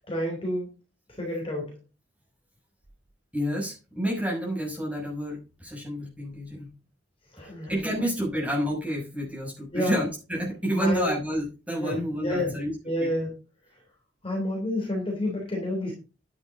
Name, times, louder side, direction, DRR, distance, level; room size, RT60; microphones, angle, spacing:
voice 1, 0.1-0.7 1.2-1.7 7.3-7.9 9.7-10.0 10.8-11.1 11.8-12.5 12.8-13.3 14.2-15.9, left 1 dB, 30° left, -1 dB, 3.5 m, -29 dB
voice 2, 3.3-6.7 7.7-12.7 13.0-13.1, equal, 5° right, -4 dB, 6.4 m, -29 dB
10.5 x 9.8 x 3.8 m, 0.32 s
head